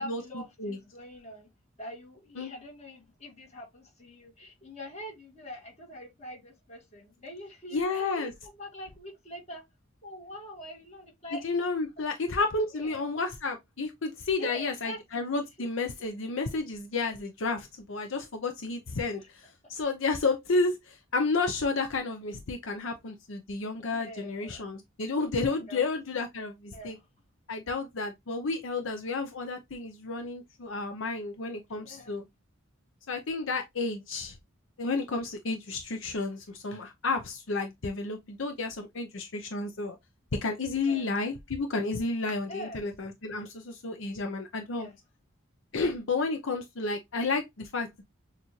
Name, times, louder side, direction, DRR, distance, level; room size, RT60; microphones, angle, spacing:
voice 1, 0.0-1.5 1.8-9.6 10.0-11.5 12.7-13.1 14.4-15.7 16.0-16.1 19.6-19.7 23.9-24.7 25.7-25.9 26.7-27.0 31.7-32.2 40.8-41.1 42.5-42.8 44.8-45.0, equal, 30° left, 1.8 m, -44 dB
voice 2, 7.7-8.3 11.4-27.0 27.5-32.2 33.1-34.4 34.8-40.0 40.4-44.9 45.7-48.0, left 3 dB, 70° left, 0.7 m, -31 dB
6.5 x 2.5 x 3.1 m
head